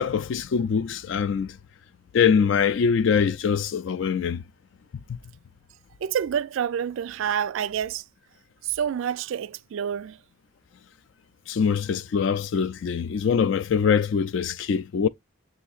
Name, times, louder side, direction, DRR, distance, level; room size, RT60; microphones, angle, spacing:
voice 1, 0.0-1.6 2.1-4.4 5.1-5.2 11.5-15.1, left 6 dB, 60° left, 0.3 m, -23 dB
voice 2, 6.0-8.0 8.6-10.2, right 8 dB, 70° right, 0.3 m, -28 dB
6.8 x 2.8 x 2.4 m
head